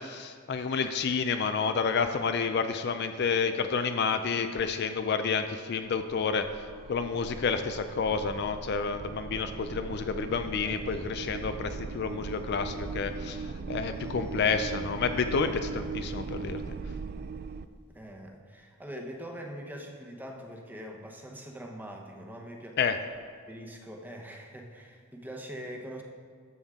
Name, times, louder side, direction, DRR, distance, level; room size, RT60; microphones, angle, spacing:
voice 1, 0.0-6.5 6.9-16.6 22.8-23.0, left 5 dB, 50° left, 8 dB, 0.4 m, -29 dB
sound 1, 5.8-17.7, right 4 dB, 45° right, 0.3 m, -39 dB
voice 2, 17.9-22.8 23.5-26.0, equal, 10° right, 1 dB, 0.9 m, -43 dB
12.5 x 7.1 x 3.6 m, 2.1 s
head